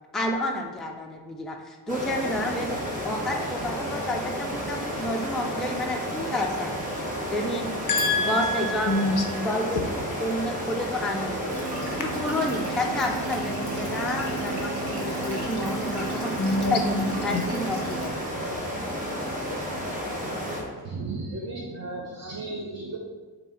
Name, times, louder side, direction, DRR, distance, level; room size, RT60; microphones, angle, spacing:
voice 1, 0.1-2.8 3.0-6.7 7.3-7.7 8.2-9.0 9.4-9.9 10.2-11.4 12.0-16.8 17.2-18.2, left 1 dB, ahead, 1 dB, 0.4 m, -30 dB
sound 1, 1.9-20.6, equal, 20° right, 1.3 m, -32 dB
voice 2, 7.9-9.4 16.4-17.4, left 2 dB, 50° left, 2 dB, 0.9 m, -26 dB
sound 2, 11.5-18.1, right 4 dB, 70° right, 1.3 m, -36 dB
voice 3, 20.8-23.0, right 3 dB, 40° right, -2 dB, 0.7 m, -34 dB
7.2 x 3.0 x 4.3 m, 1.4 s
wide cardioid pair, 170°, 40 cm